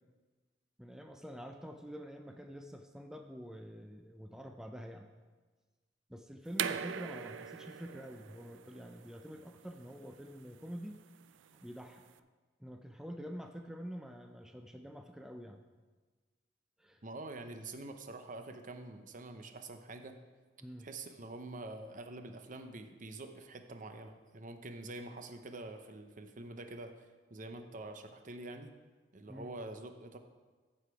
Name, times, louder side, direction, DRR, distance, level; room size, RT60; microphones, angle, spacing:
voice 1, 0.8-5.1 6.1-10.9 11.5-12.1 12.6-15.6 16.8-17.0 20.6-20.9 29.3-29.5, equal, 5° right, 4 dB, 0.4 m, -47 dB
sound 1, 6.5-12.1, right 8 dB, 90° right, 0.4 m, -42 dB
voice 2, 17.0-20.1 20.8-26.9 27.3-28.7 29.1-30.2, right 2 dB, 45° right, 7 dB, 0.7 m, -46 dB
14.0 x 5.0 x 4.7 m, 1.3 s
head